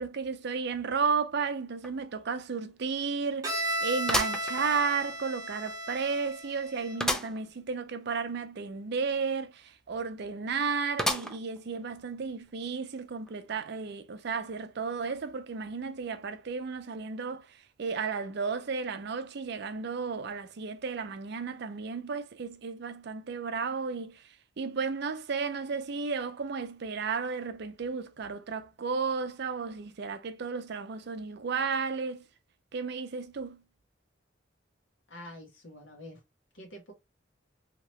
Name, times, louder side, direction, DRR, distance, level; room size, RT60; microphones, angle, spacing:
voice 1, 0.0-24.2 24.6-32.2 32.7-33.6, right 5 dB, 65° right, 0.5 m, -33 dB
sound 1, 1.8-1.9 2.4-2.5 4.1-5.2 5.7-5.8 7.0-7.4 7.8-7.9 8.1-8.2 11.0-11.6 12.2-12.3 13.3-13.4, equal, 5° left, 0.4 m, -31 dB
Bowed string instrument, 3.4-7.2, right 1 dB, 20° right, 0.8 m, -35 dB
voice 2, 35.1-36.2 36.5-36.9, left 1 dB, 90° left, 1.3 m, -46 dB
2.9 x 2.9 x 2.9 m
head